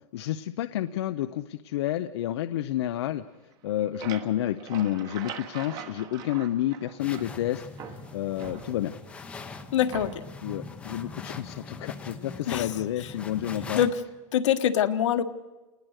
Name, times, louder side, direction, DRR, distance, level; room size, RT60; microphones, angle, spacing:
voice 1, 0.1-3.2 3.6-8.9 10.4-13.8, left 12 dB, 55° left, 9 dB, 0.7 m, -30 dB
sound 1, 3.5-7.4 7.8-9.1 9.9-10.4, right 8 dB, 25° right, 1.3 m, -42 dB
sound 2, 7.0-13.9, left 4 dB, 5° left, 0.8 m, -42 dB
voice 2, 9.7-10.1 12.5-12.7 13.0-13.1 13.7-14.0 14.3-15.2, left 9 dB, 70° left, 9 dB, 1.5 m, -24 dB
29.0 x 19.5 x 6.5 m, 1.1 s
supercardioid pair, 175°, 16 cm